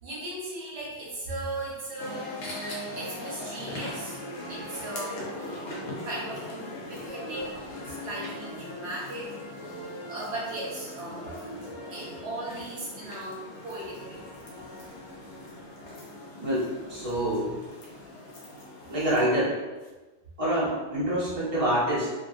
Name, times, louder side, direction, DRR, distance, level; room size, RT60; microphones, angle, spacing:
voice 1, 0.0-5.6 6.0-7.5 7.8-9.4 10.1-11.2 11.9-14.2 16.1-16.2 18.9-19.0, right 1 dB, 70° right, -5 dB, 1.1 m, -37 dB
sound 1, 2.0-19.4, left 1 dB, 85° left, 1.0 m, -40 dB
voice 2, 16.4-17.6 18.9-19.6 20.4-22.1, right 1 dB, 35° right, -8 dB, 0.9 m, -26 dB
2.7 x 2.6 x 2.4 m, 1.2 s
omnidirectional pair, 1.2 m